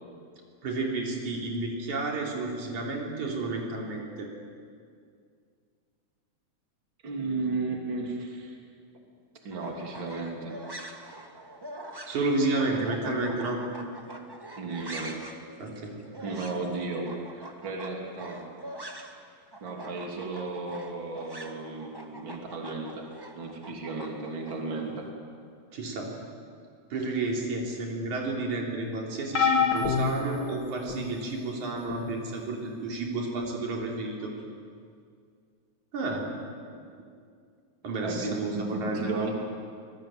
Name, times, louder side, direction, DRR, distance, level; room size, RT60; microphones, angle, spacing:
voice 1, 0.6-4.3 12.1-13.6 15.6-16.0 25.7-26.1 26.9-34.3 35.9-36.3 37.8-39.2, right 2 dB, 85° right, -1 dB, 4.8 m, -31 dB
voice 2, 7.0-8.6 9.4-10.6 14.6-15.2 16.2-18.4 19.6-23.1 23.3-25.1 38.0-39.4, right 3 dB, 40° right, 0 dB, 3.7 m, -34 dB
sound 1, 9.5-19.3 19.5-24.5, right 1 dB, 20° right, 0.7 m, -44 dB
sound 2, 29.3-31.1 31.9-32.1 33.4-33.5, left 5 dB, 40° left, 1.9 m, -27 dB
25.5 x 20.5 x 8.7 m, 2.2 s
omnidirectional pair, 3.3 m